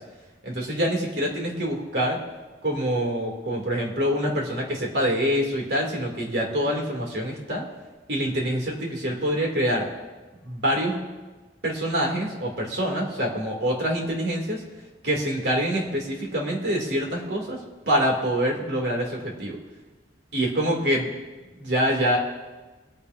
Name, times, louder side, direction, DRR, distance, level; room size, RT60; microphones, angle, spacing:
voice 1, 0.4-2.2 2.6-7.6 8.1-9.9 10.4-11.0 11.6-14.6 15.0-17.6 17.9-19.6 20.3-21.1 21.6-22.2, equal, 65° right, -1 dB, 2.8 m, -25 dB
22.5 x 9.4 x 2.7 m, 1.2 s
head